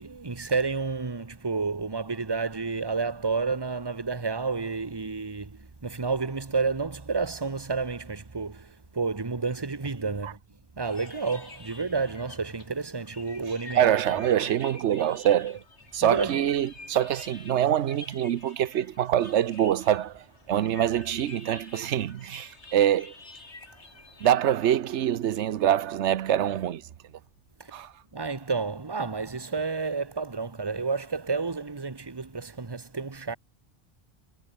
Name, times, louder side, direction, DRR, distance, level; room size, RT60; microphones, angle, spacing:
voice 1, 0.0-10.4 10.8-13.9 16.0-16.4 27.6-27.8 28.1-33.4, right 4 dB, 20° right, 1.2 m, -30 dB
sound 1, 10.8-24.3, left 3 dB, 80° left, 3.3 m, -48 dB
voice 2, 13.7-15.6 15.9-23.1 24.2-26.9 27.7-27.9, right 10 dB, 90° right, 1.0 m, -25 dB
omnidirectional pair, 1.1 m